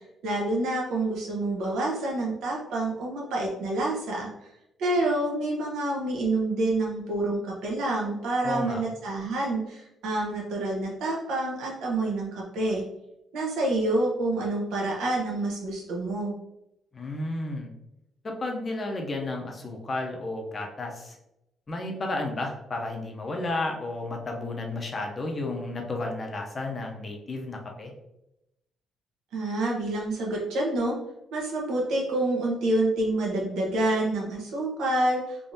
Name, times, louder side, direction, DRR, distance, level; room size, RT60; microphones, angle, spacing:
voice 1, 0.2-4.3 4.8-12.8 13.3-16.4 29.3-30.9 31.3-35.5, right 2 dB, 90° right, -2 dB, 1.1 m, -27 dB
voice 2, 8.4-8.8 16.9-17.7 18.2-21.2 21.7-27.9, left 2 dB, 25° left, 2 dB, 0.6 m, -32 dB
3.5 x 3.0 x 2.6 m, 0.86 s
cardioid pair, 145°, 0 cm